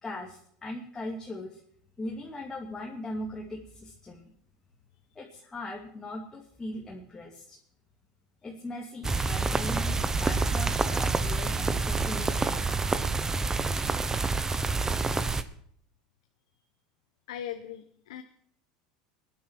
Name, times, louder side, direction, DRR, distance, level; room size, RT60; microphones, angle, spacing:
voice 1, 0.0-1.6 2.0-4.3 5.1-7.6 8.4-12.8, left 1 dB, 15° left, -1 dB, 2.5 m, -39 dB
sound 1, 9.0-15.4, right 3 dB, 15° right, 1.0 m, -27 dB
voice 2, 17.3-18.2, left 10 dB, 90° left, 7 dB, 1.0 m, -39 dB
19.5 x 10.5 x 4.6 m, 0.63 s
supercardioid pair, 110°, 3 cm